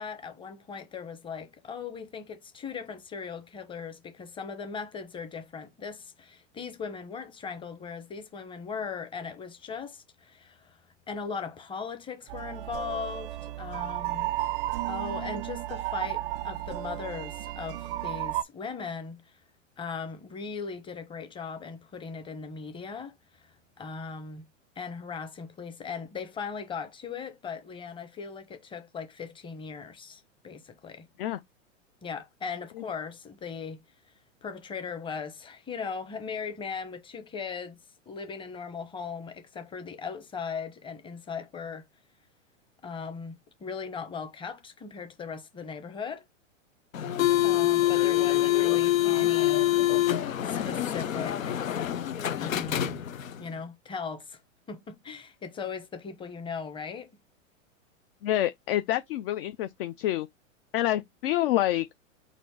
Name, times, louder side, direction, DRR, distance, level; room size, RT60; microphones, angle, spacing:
voice 1, 0.0-10.8 11.1-14.3 14.9-19.4 19.8-24.4 24.8-31.1 32.0-33.8 34.4-37.8 38.1-41.8 42.8-46.3 47.4-49.7 50.4-51.8 52.4-53.0 53.4-54.4 54.7-57.1, left 5 dB, 15° left, 0.8 m, -38 dB
sound 1, 12.3-18.4, right 14 dB, 50° right, 0.4 m, -33 dB
sound 2, 46.9-53.4, left 13 dB, 85° left, 0.7 m, -25 dB
voice 2, 58.2-60.3 60.7-61.9, left 14 dB, 50° left, 0.4 m, -27 dB
4.1 x 2.6 x 4.5 m
hypercardioid pair, 115°, 39 cm